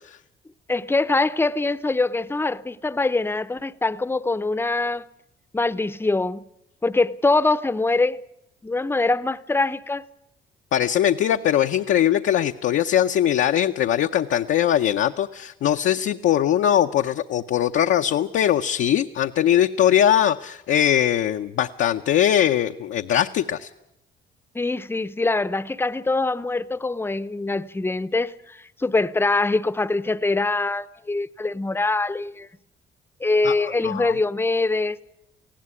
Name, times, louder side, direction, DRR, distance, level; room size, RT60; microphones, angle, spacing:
voice 1, 0.7-5.1 5.5-6.4 6.8-8.2 8.6-10.1 24.5-32.5 33.2-35.0, left 3 dB, 10° left, 0.7 m, -23 dB
voice 2, 10.7-23.7 33.4-33.6 33.8-34.1, left 10 dB, 75° left, 0.7 m, -21 dB
19.0 x 16.0 x 9.7 m
cardioid pair, 90°, 20 cm